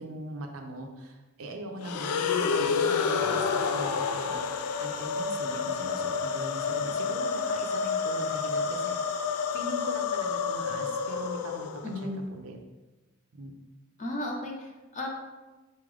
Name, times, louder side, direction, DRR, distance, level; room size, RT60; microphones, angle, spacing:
voice 1, 0.0-9.0 9.3-11.7 11.9-12.6 13.3-13.5, right 1 dB, 70° right, 3 dB, 0.6 m, -41 dB
sound 1, 1.8-12.0, left 5 dB, 85° left, 0.3 m, -29 dB
voice 2, 11.8-12.2 14.0-15.1, left 1 dB, 35° left, 0 dB, 0.7 m, -34 dB
4.2 x 3.7 x 3.3 m, 1.1 s
head